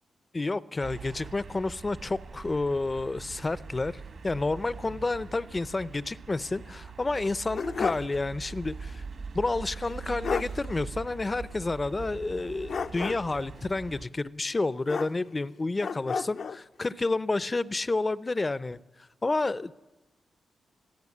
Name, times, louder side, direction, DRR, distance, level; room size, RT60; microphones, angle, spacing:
voice 1, 0.3-9.0 9.3-19.7, left 3 dB, 30° left, 17 dB, 0.6 m, -30 dB
sound 1, 0.8-14.0, right 5 dB, 65° right, 2.1 m, -42 dB
sound 2, 7.1-8.2 8.5-8.6 9.9-10.0 10.2-10.6 12.7-13.4 14.9-15.5 15.8-16.6, left 5 dB, 65° left, 0.7 m, -32 dB
22.0 x 14.5 x 8.5 m, 1.1 s
cardioid pair, 80°, 0 cm